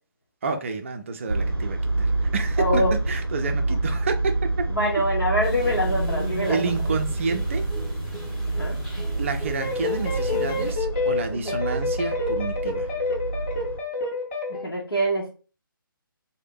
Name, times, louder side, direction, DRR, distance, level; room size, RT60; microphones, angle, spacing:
voice 1, 0.4-4.3 6.5-7.7 9.2-12.9, right 4 dB, 35° right, 0.4 m, -29 dB
sound 1, 1.3-13.8, right 2 dB, 90° right, 0.5 m, -28 dB
voice 2, 2.6-3.0 4.7-6.6 8.5-8.8 11.3-11.6 14.5-15.3, equal, 75° left, 0.8 m, -25 dB
sound 2, 5.4-10.7, equal, 5° left, 0.7 m, -36 dB
sound 3, 9.6-14.6, left 3 dB, 35° left, 0.8 m, -28 dB
2.6 x 2.1 x 3.5 m
figure-of-eight pair, 140°, 12 cm